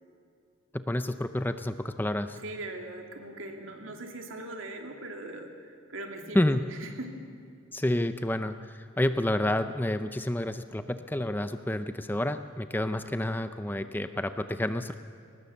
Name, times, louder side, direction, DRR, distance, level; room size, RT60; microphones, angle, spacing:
voice 1, 0.7-2.4 6.3-6.6 7.7-14.9, left 1 dB, 10° left, 10 dB, 0.5 m, -29 dB
voice 2, 2.4-6.5 6.8-7.2, right 2 dB, 75° right, 3 dB, 2.6 m, -40 dB
23.0 x 19.0 x 7.2 m, 2.4 s
head